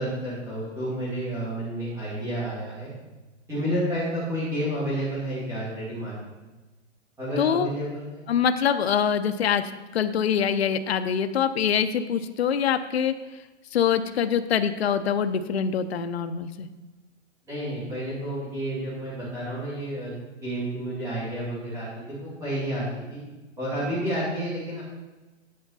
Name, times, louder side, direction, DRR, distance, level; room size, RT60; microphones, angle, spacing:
voice 1, 0.0-2.9 3.5-6.1 7.2-8.2 17.5-20.1 20.4-22.8 23.1-23.2 23.6-24.8, equal, 10° right, -10 dB, 2.4 m, -30 dB
voice 2, 7.4-7.7 8.3-9.6 9.9-13.1 13.7-16.7, left 8 dB, 60° left, 9 dB, 0.7 m, -24 dB
8.6 x 7.2 x 4.0 m, 1.1 s
hypercardioid pair, 175°, 36 cm